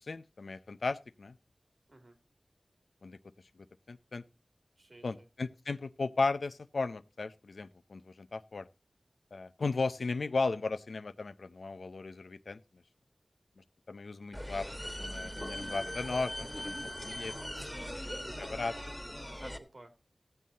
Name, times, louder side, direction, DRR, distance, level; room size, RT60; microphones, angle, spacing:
voice 1, 0.1-1.4 3.0-3.2 3.9-4.2 5.0-8.7 9.3-12.6 13.9-14.7 15.0-16.8 17.0-17.3 18.5-18.7, left 3 dB, 90° left, 0.6 m, -35 dB
voice 2, 4.8-5.3 16.7-17.0 17.5-18.7 19.3-19.9, right 2 dB, 65° right, 2.5 m, -55 dB
sound 1, 14.3-19.6, equal, 5° left, 1.5 m, -40 dB
15.5 x 7.7 x 4.0 m
wide cardioid pair, 50°, 0 cm